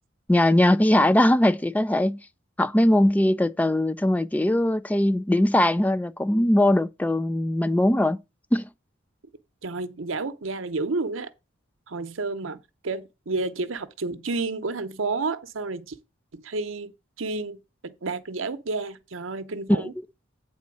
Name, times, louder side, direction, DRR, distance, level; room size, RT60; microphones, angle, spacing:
voice 1, 0.3-2.2 2.6-8.2 8.5-8.7 19.7-19.9, left 1 dB, 10° left, 0.4 m, -20 dB
voice 2, 9.6-11.3 11.9-16.0 16.3-16.9 17.2-19.9, right 3 dB, 75° right, 0.8 m, -30 dB
8.5 x 4.2 x 6.1 m
head